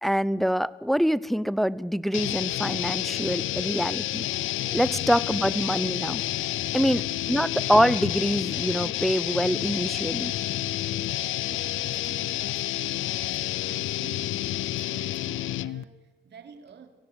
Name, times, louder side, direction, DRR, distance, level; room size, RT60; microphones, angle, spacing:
voice 1, 0.0-4.3 4.7-6.2 6.7-7.0 7.3-10.3, equal, ahead, 19 dB, 0.7 m, -25 dB
sound 1, 2.1-15.8, left 14 dB, 85° left, 0.7 m, -29 dB
voice 2, 4.8-5.1 6.8-7.1 11.4-16.9, right 6 dB, 60° right, 7 dB, 3.2 m, -50 dB
25.0 x 16.5 x 8.2 m, 1.2 s
cardioid pair, 90°, 20 cm